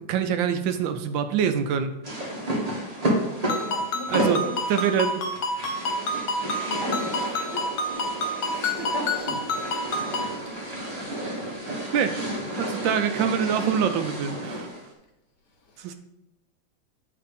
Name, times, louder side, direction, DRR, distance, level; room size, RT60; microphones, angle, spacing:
voice 1, 0.0-1.9 4.1-4.4 4.7-5.3 7.4-7.5 11.9-12.2 12.6-14.7 15.8-15.9, right 7 dB, 75° right, 9 dB, 1.3 m, -25 dB
sound 1, 2.0-14.9, right 1 dB, 25° right, 1.2 m, -31 dB
Ringtone, 3.5-10.4, left 1 dB, 80° left, 1.6 m, -29 dB
voice 2, 3.6-4.8 6.6-7.2 7.5-8.2 8.5-9.5 12.2-12.4 15.6-15.9, left 2 dB, 60° left, 2 dB, 1.6 m, -38 dB
8.5 x 3.4 x 5.1 m, 0.88 s
omnidirectional pair, 2.2 m